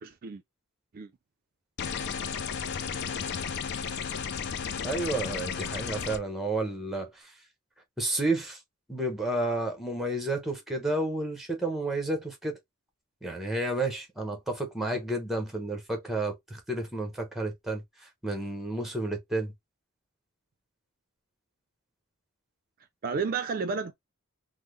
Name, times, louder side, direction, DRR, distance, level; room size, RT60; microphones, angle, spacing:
voice 1, 0.0-0.4 0.9-1.1 23.0-23.9, right 5 dB, 40° right, 0.4 m, -31 dB
sound 1, 1.8-6.2, left 6 dB, 50° left, 0.4 m, -33 dB
voice 2, 4.8-7.3 8.0-8.6 8.9-12.6 13.2-19.5, right 2 dB, ahead, 0.9 m, -31 dB
3.5 x 2.0 x 3.0 m
head